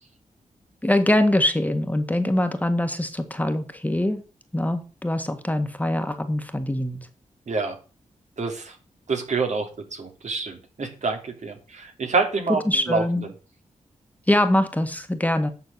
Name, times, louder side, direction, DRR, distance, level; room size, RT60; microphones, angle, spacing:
voice 1, 0.8-4.2 4.5-7.0 12.7-13.3 14.3-15.5, left 1 dB, 10° left, 7 dB, 1.6 m, -23 dB
voice 2, 7.5-7.8 8.4-8.8 9.1-12.6 12.9-13.0, right 4 dB, 65° right, 4 dB, 3.1 m, -27 dB
9.6 x 6.8 x 6.2 m, 0.35 s
cardioid pair, 75°, 13 cm